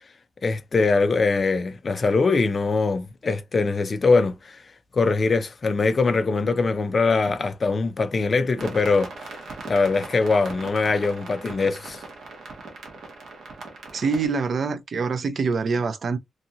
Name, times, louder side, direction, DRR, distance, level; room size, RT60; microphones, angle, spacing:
voice 1, 0.4-4.6 4.9-9.3 9.7-12.0, left 4 dB, 30° left, 0.4 m, -22 dB
sound 1, 8.6-14.3, right 3 dB, 70° right, 1.0 m, -39 dB
voice 2, 13.9-16.2, right 4 dB, 45° right, 0.4 m, -25 dB
2.9 x 2.7 x 2.4 m
wide cardioid pair, 180°, 0 cm